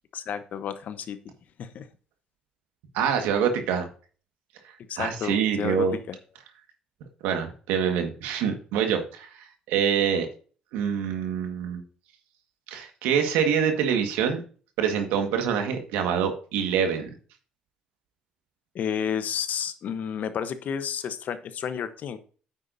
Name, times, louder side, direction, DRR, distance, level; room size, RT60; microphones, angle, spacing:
voice 1, 0.1-1.2 1.6-1.9 4.9-6.2 18.7-22.2, left 8 dB, 60° left, 11 dB, 1.0 m, -31 dB
voice 2, 2.9-3.9 5.0-6.0 7.2-9.3 9.7-10.3 10.7-11.8 12.7-14.4 14.8-17.1, right 7 dB, 85° right, 5 dB, 1.7 m, -25 dB
9.5 x 8.2 x 2.7 m, 0.40 s
supercardioid pair, 65°, 3 cm